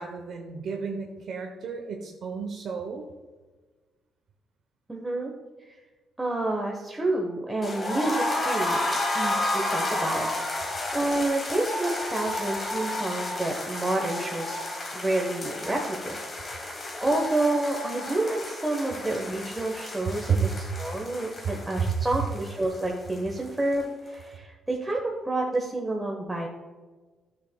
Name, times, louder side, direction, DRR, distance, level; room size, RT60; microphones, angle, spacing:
voice 1, 0.0-3.0 20.3-20.5 21.4-21.5 21.8-22.3, right 6 dB, 65° right, 2 dB, 0.8 m, -30 dB
voice 2, 4.9-5.3 5.7-5.8 6.2-8.8 9.1-10.3 10.6-14.7 14.9-16.2 16.6-26.5, right 2 dB, 15° right, -2 dB, 1.0 m, -29 dB
sound 1, 7.6-23.5 23.7-23.8 24.1-24.2, left 2 dB, 35° left, 1.7 m, -32 dB
10.5 x 6.3 x 2.3 m, 1.3 s
cardioid pair, 90°, 0 cm